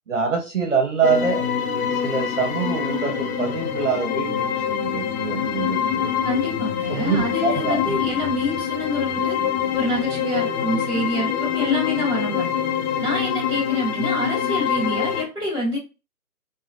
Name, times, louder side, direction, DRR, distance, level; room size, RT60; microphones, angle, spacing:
voice 1, 0.1-1.4 1.9-6.2 6.9-8.0, right 5 dB, 55° right, 2 dB, 0.9 m, -25 dB
sound 1, 1.0-15.2, left 8 dB, 70° left, 0.8 m, -25 dB
voice 2, 6.2-9.4 9.7-12.5 13.0-15.8, left 1 dB, 5° left, -15 dB, 1.5 m, -27 dB
3.2 x 2.3 x 2.6 m, 0.30 s
hypercardioid pair, 175°, 45 cm